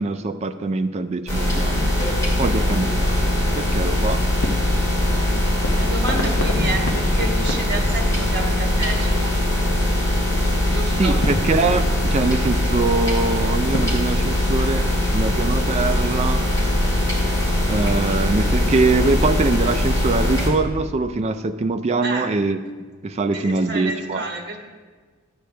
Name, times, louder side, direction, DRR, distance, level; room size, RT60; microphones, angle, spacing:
voice 1, 0.0-1.9 2.4-4.2 11.0-14.9 15.1-16.4 17.7-22.6 23.0-24.2, right 3 dB, 30° right, 8 dB, 0.4 m, -23 dB
sound 1, 1.3-20.5, left 1 dB, 15° left, 2.7 m, -21 dB
voice 2, 2.3-2.7 5.7-9.3 10.7-11.2 22.0-22.3 23.3-24.6, right 2 dB, 50° right, 1 dB, 1.3 m, -30 dB
sound 2, 4.4-14.1, left 1 dB, 65° left, 0.9 m, -35 dB
12.5 x 7.9 x 3.4 m, 1.4 s
head